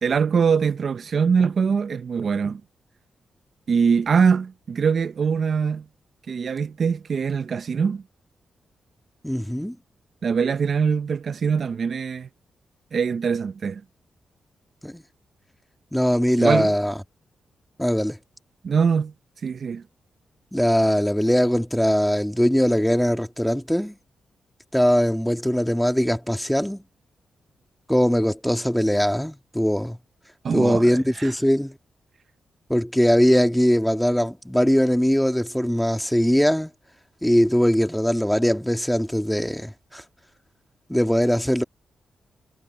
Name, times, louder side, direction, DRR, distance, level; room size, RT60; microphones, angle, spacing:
voice 1, 0.0-2.6 3.7-5.8 6.3-8.0 10.2-12.3 12.9-13.8 16.4-16.7 18.6-19.1 19.4-19.8 30.4-31.3, right 6 dB, 55° right, 0.8 m, -23 dB
voice 2, 9.2-9.8 14.8-15.0 15.9-16.9 17.8-18.2 20.5-23.9 24.7-26.8 27.9-30.0 30.5-31.8 32.7-36.7 37.2-40.0 40.9-41.6, equal, 5° left, 1.9 m, -21 dB
cardioid pair, 85°, 0 cm